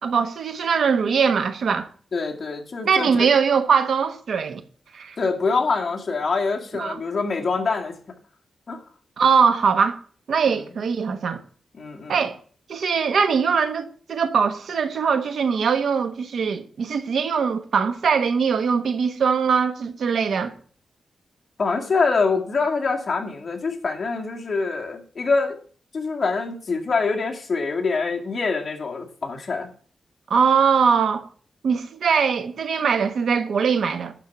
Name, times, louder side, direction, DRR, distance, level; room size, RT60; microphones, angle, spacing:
voice 1, 0.0-1.9 2.8-4.6 4.9-5.2 6.7-7.0 9.2-10.0 10.3-11.4 12.1-12.4 12.7-20.5 30.3-31.3 31.6-34.1, right 6 dB, 75° right, 1.2 m, -21 dB
voice 2, 2.1-3.3 5.2-7.9 8.7-8.8 11.7-12.2 21.6-25.6 25.9-29.7, left 4 dB, 45° left, 2.1 m, -25 dB
11.5 x 4.6 x 8.3 m
wide cardioid pair, 125°, 0 cm